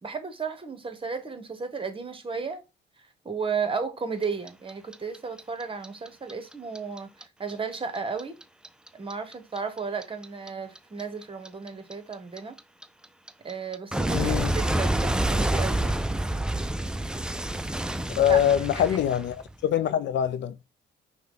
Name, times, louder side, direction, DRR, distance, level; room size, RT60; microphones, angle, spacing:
voice 1, 0.0-2.6 3.0-8.4 8.9-12.6 13.4-16.0 18.3-18.4 18.8-19.0, right 5 dB, 25° right, 1.0 m, -34 dB
Clock, 4.2-7.2 7.5-10.5 10.8-19.6, right 1 dB, 5° right, 0.3 m, -28 dB
voice 2, 14.1-14.5 18.1-19.4 19.6-20.5, left 10 dB, 65° left, 0.5 m, -23 dB
5.6 x 2.2 x 3.8 m
cardioid pair, 90°, 20 cm